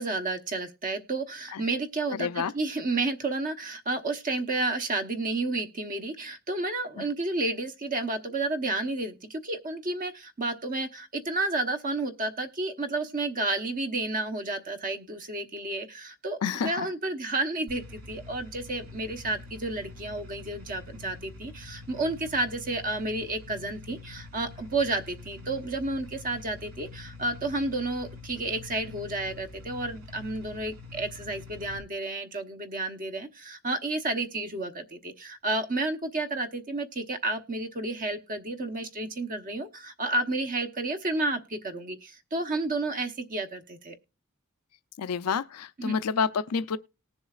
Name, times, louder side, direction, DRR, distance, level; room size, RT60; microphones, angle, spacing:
voice 1, 0.0-43.9 45.8-46.0, right 2 dB, 35° right, 1.0 m, -31 dB
voice 2, 2.1-2.5 7.0-7.1 16.4-16.9 45.0-46.8, left 6 dB, 90° left, 0.5 m, -29 dB
sound 1, 17.7-31.8, left 3 dB, 65° right, 2.6 m, -45 dB
19.5 x 7.0 x 2.4 m
head